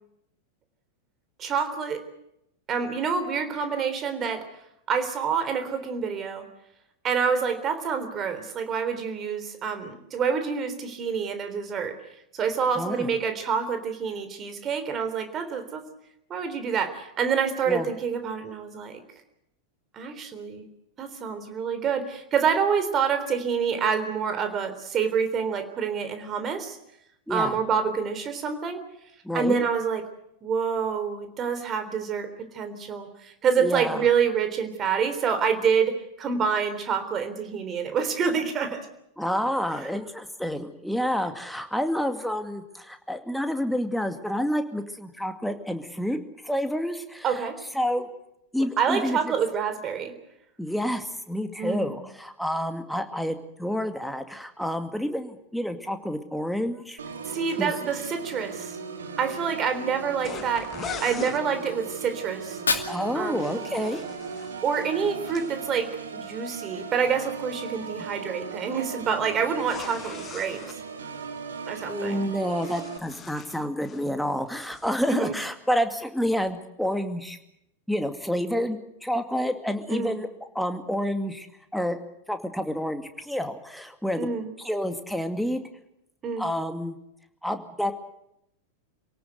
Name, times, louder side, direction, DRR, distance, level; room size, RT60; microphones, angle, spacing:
voice 1, 1.4-2.0 2.7-4.5 4.9-6.5 7.0-12.0 12.3-15.8 16.3-19.0 19.9-20.7 21.0-26.8 27.3-28.8 29.3-30.0 30.4-32.3 32.5-38.9 47.2-47.6 48.8-50.1 51.6-52.0 57.3-58.8 59.2-62.6 63.1-63.7 64.6-70.6 71.7-72.2 75.1-75.4 79.9-80.2 84.2-84.5 86.2-86.5, right 6 dB, 30° right, 9 dB, 3.6 m, -27 dB
voice 2, 12.8-13.1 17.7-17.9 27.3-27.6 29.2-29.6 33.6-34.1 39.2-47.5 47.7-48.1 48.5-49.3 50.6-57.0 57.6-57.7 62.9-64.0 67.8-68.1 71.9-77.4 77.9-81.5 81.7-82.0 82.3-84.3 84.6-85.6 86.4-87.0 87.4-87.9, equal, ahead, 7 dB, 2.3 m, -29 dB
Organ, 57.0-73.0, right 5 dB, 70° right, 2.4 m, -37 dB
sound 1, 60.2-61.4 63.1-65.5 69.6-70.8 72.2-74.1 74.4-74.9, left 8 dB, 25° left, 1.6 m, -41 dB
Fire, 62.4-64.4, left 4 dB, 75° left, 2.4 m, -32 dB
27.0 x 18.0 x 8.1 m, 0.81 s
figure-of-eight pair, 90°, 0 cm